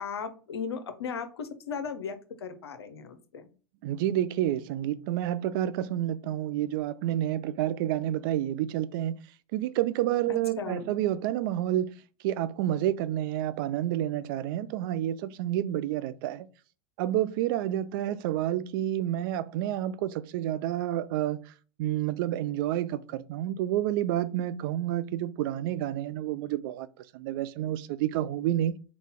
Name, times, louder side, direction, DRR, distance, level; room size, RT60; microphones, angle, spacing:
voice 1, 0.0-3.5 10.3-10.9, left 6 dB, 80° left, 0.6 m, -37 dB
voice 2, 3.8-9.2 9.5-16.5 17.0-21.5 21.8-26.9 27.1-28.8, right 12 dB, 55° right, 0.4 m, -29 dB
3.9 x 2.3 x 3.7 m
hypercardioid pair, 85°, 13 cm